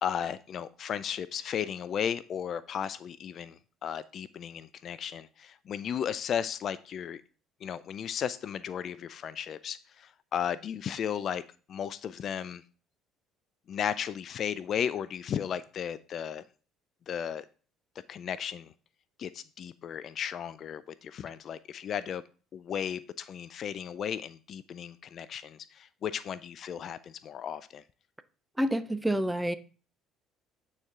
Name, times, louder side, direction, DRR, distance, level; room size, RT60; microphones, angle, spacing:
voice 1, 0.0-7.2 7.6-11.4 11.7-12.6 13.7-16.4 17.1-17.4 18.1-18.7 19.2-22.2 22.5-27.8, left 8 dB, 50° left, 0.4 m, -35 dB
voice 2, 28.6-29.5, right 1 dB, 5° right, 0.6 m, -28 dB
8.9 x 4.3 x 3.5 m
hypercardioid pair, 55°, 0 cm